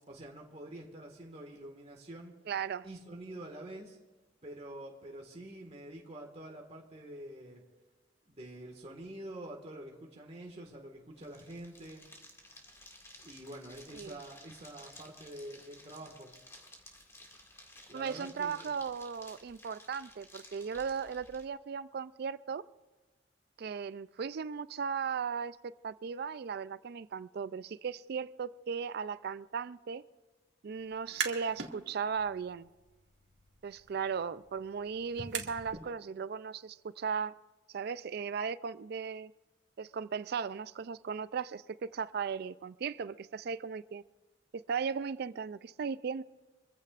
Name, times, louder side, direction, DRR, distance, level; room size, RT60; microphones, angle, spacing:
voice 1, 0.1-2.3 2.8-4.0 4.4-7.6 8.3-12.1 13.2-16.3 17.9-18.7, right 1 dB, 35° right, 0 dB, 1.7 m, -47 dB
voice 2, 2.5-2.9 13.9-14.2 17.9-22.6 23.6-25.6 25.8-30.0 30.6-32.7 33.6-37.3 37.7-39.3 39.8-44.0 44.5-46.2, right 6 dB, 55° right, 16 dB, 0.4 m, -37 dB
sound 1, 11.1-21.4, left 1 dB, 15° left, 2.1 m, -55 dB
sound 2, 30.9-31.7 32.1-35.9, right 6 dB, 75° right, 2.0 m, -42 dB
25.0 x 15.0 x 2.5 m, 1.3 s
head